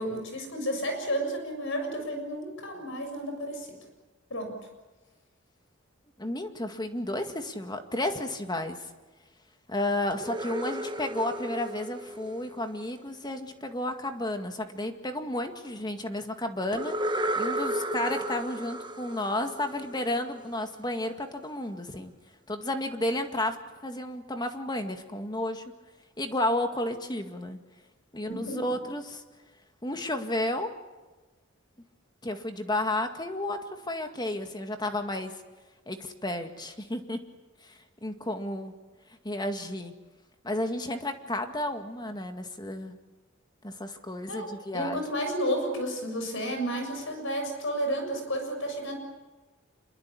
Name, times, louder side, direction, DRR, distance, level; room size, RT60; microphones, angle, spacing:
voice 1, 0.0-3.8 4.3-4.6 28.3-28.8 44.3-48.9, equal, 65° left, 5 dB, 6.9 m, -32 dB
voice 2, 6.2-8.9 9.7-17.0 17.4-22.1 22.5-23.6 23.8-25.6 26.2-27.6 28.1-29.2 29.8-30.7 32.2-35.3 35.9-37.2 37.6-38.7 39.2-39.9 40.4-43.0 43.6-45.0, left 1 dB, 20° left, 6 dB, 2.0 m, -32 dB
sound 1, 10.1-13.1 16.7-20.4, right 1 dB, 20° right, 1.2 m, -34 dB
27.0 x 22.5 x 8.5 m, 1.2 s
head